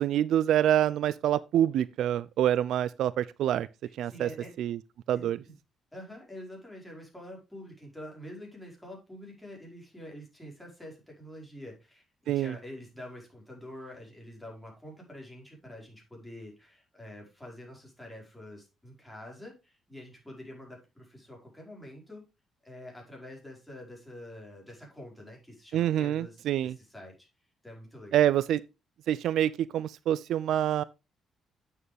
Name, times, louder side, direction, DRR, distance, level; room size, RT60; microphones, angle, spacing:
voice 1, 0.0-3.7 4.0-4.3 4.6-4.8 5.1-5.4 12.3-12.5 25.7-26.8 28.1-28.6 29.1-30.8, right 11 dB, 75° right, 0.4 m, -26 dB
voice 2, 3.8-4.5 5.1-5.5 5.9-22.2 22.6-27.3 27.6-28.3, left 1 dB, 5° left, 4.8 m, -46 dB
9.0 x 6.7 x 3.4 m
cardioid pair, 90°, 0 cm